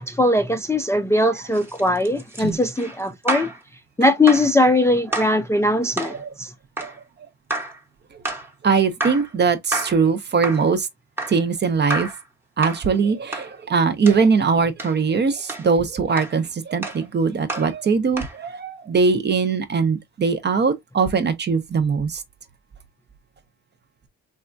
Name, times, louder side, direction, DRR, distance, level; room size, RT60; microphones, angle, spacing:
voice 1, 0.0-3.5 4.0-6.5, left 1 dB, 10° left, 0.4 m, -20 dB
sound from two pair of logs, 1.5-3.6 4.3-4.5 5.1-5.4 6.0-6.2 6.8-7.0 7.5-7.8 8.3-8.5 9.0-9.3 9.7-10.1 10.4-10.7 11.2-11.4 11.9-12.2 12.6-12.9 13.3-13.5 14.1-14.2 14.8-15.0 15.5-15.7 16.2-16.4 16.8-17.0 17.5-17.7 18.2-18.4, right 2 dB, 10° right, 0.8 m, -29 dB
voice 2, 6.0-6.3 6.8-6.9 8.6-10.9 11.3-12.1 12.6-22.2, right 5 dB, 35° right, 0.6 m, -21 dB
3.5 x 2.2 x 2.4 m
cardioid pair, 90°, 30 cm